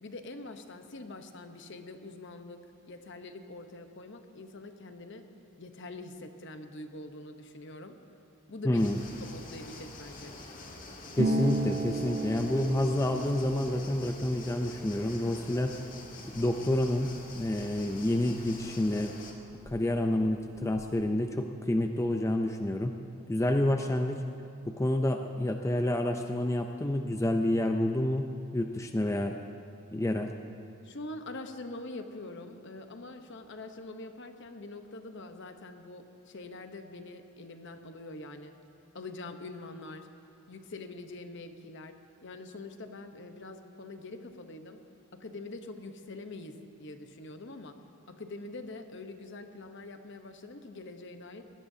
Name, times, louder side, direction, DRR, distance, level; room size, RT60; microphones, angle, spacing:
voice 1, 0.0-5.2 5.6-8.0 8.5-8.9 9.2-10.4 30.8-38.5 38.9-40.1 40.5-41.9 42.2-44.8 45.1-47.8 48.1-51.4, left 2 dB, 55° left, 7 dB, 0.9 m, -44 dB
voice 2, 8.6-9.0 11.2-15.7 16.3-19.1 19.7-22.9 23.3-24.2 24.6-29.4 29.9-30.3, left 1 dB, 15° left, 4 dB, 0.4 m, -28 dB
sound 1, 8.7-19.3, left 2 dB, 40° left, 1.6 m, -47 dB
Harp, 11.1-18.6 18.9-20.0 20.3-20.9, right 2 dB, 85° right, 1.2 m, -37 dB
22.5 x 17.5 x 2.8 m, 2.7 s
head